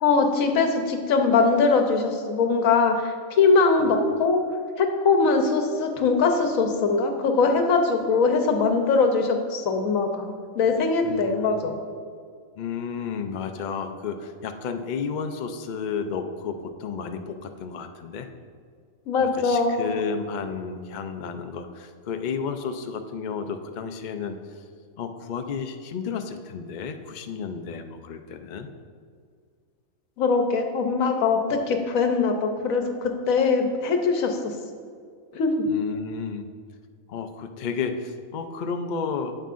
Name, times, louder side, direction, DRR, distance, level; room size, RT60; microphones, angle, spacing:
voice 1, 0.0-4.4 4.8-11.7 19.1-19.9 30.2-34.6 35.3-35.5, left 4 dB, 80° left, 5 dB, 1.2 m, -22 dB
voice 2, 11.0-11.6 12.6-18.3 19.2-24.6 25.0-28.7 35.7-36.5 37.1-39.4, left 5 dB, 65° left, 6 dB, 0.4 m, -32 dB
9.1 x 7.8 x 2.5 m, 2.1 s
omnidirectional pair, 1.4 m